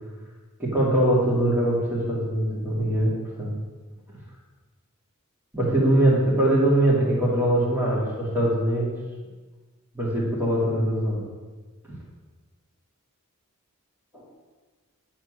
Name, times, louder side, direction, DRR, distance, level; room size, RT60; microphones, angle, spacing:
voice 1, 0.6-3.1 3.4-3.5 5.5-8.9 9.9-11.2 14.1-14.2, right 1 dB, 10° right, -6 dB, 2.3 m, -22 dB
9.3 x 4.3 x 6.2 m, 1.4 s
head